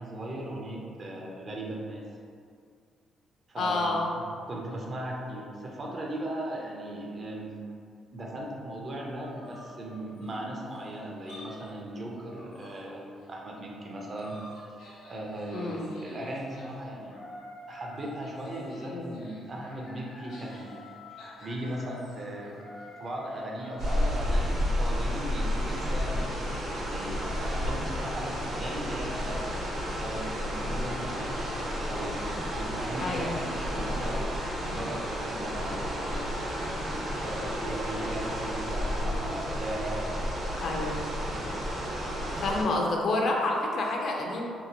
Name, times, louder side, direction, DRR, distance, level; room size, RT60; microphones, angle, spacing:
voice 1, 0.0-2.0 3.5-7.6 8.1-14.4 15.1-17.2 17.7-20.9 21.4-22.6 23.0-29.4 30.0-31.5 31.9-36.2 37.2-40.6, right 1 dB, 40° right, -2 dB, 0.5 m, -38 dB
voice 2, 3.6-4.1 15.5-15.9 18.9-19.1 33.0-33.3 40.6-41.0 42.4-44.5, left 2 dB, 60° left, 0 dB, 0.4 m, -28 dB
sound 1, 9.2-11.8 12.1-13.3 13.7-24.9 25.2-26.6, left 1 dB, 80° left, 0.8 m, -49 dB
sound 2, 23.8-42.6, equal, 70° right, 0.9 m, -31 dB
2.7 x 2.1 x 2.8 m, 2.3 s
cardioid pair, 90°, 0 cm